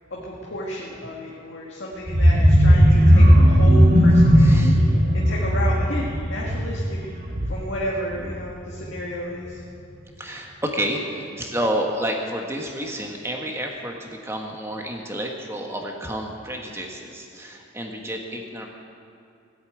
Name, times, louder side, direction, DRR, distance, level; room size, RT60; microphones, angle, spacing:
voice 1, 0.1-4.7 5.1-7.0 7.5-9.6, equal, 70° left, -4 dB, 1.9 m, -32 dB
sound 1, 2.1-7.8 8.2-8.5 8.8-8.9, equal, 50° right, 3.5 m, -16 dB
voice 2, 4.4-4.8 10.2-18.7, right 1 dB, 15° right, 1 dB, 1.3 m, -30 dB
17.0 x 8.3 x 8.9 m, 2.5 s
head